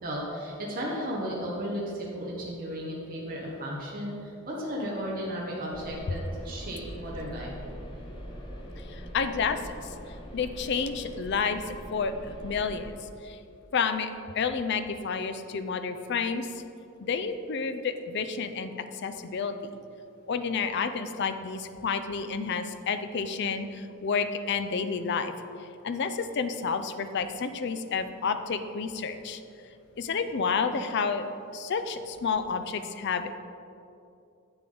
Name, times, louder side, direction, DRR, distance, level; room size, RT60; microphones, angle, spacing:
voice 1, 0.0-7.5, equal, 40° right, -4 dB, 1.1 m, -34 dB
sound 1, 5.7-12.9, equal, 20° left, 0.9 m, -42 dB
voice 2, 8.9-9.7 10.3-11.6 11.9-12.1 12.4-13.0 13.2-13.4 13.7-14.1 14.3-16.5 17.0-18.7 19.0-19.5 20.3-25.3 25.8-29.4 30.0-31.3 31.5-33.3, left 5 dB, 50° left, 9 dB, 0.4 m, -30 dB
8.3 x 6.9 x 3.9 m, 2.6 s
head